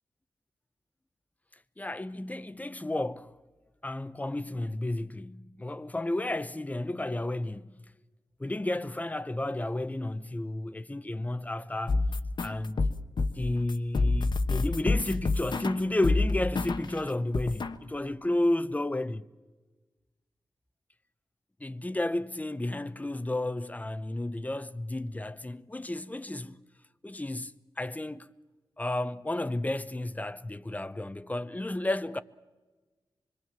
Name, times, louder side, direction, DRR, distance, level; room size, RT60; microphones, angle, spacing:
voice 1, 1.8-3.3 3.8-7.7 8.4-12.0 12.4-12.8 13.3-19.3 21.6-26.6 27.0-28.3 28.8-32.2, left 1 dB, 20° left, 0.9 m, -32 dB
sound 1, 11.9-17.0 17.3-17.8, left 3 dB, 65° left, 1.2 m, -28 dB
25.5 x 22.5 x 7.4 m
cardioid pair, 70°, 8 cm